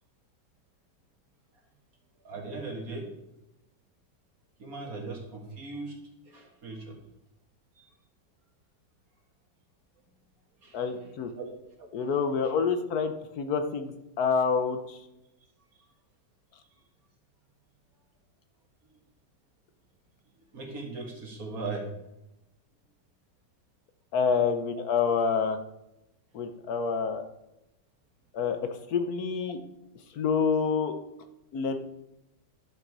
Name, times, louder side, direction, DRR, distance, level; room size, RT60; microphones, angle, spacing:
voice 1, 2.2-3.1 4.6-6.0 6.3-7.0 7.8-7.9 10.6-11.5 11.8-11.9 20.5-21.9, right 3 dB, 55° right, 2 dB, 2.1 m, -39 dB
voice 2, 10.7-11.3 11.9-15.0 24.1-25.6 26.3-27.2 28.3-28.6 28.9-29.6 30.1-30.9 31.5-31.8, left 5 dB, 60° left, 8 dB, 1.4 m, -27 dB
11.0 x 6.4 x 4.8 m, 0.88 s
omnidirectional pair, 1.9 m